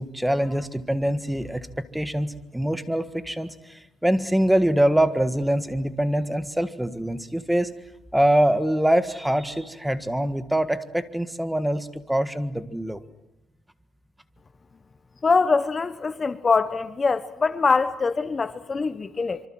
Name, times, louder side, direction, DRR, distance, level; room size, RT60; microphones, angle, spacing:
voice 1, 0.0-7.7 8.1-13.0, right 1 dB, 5° right, 1.6 m, -24 dB
voice 2, 15.2-19.4, left 4 dB, 35° left, 1.0 m, -23 dB
25.5 x 24.5 x 7.7 m
cardioid pair, 90°, 0 cm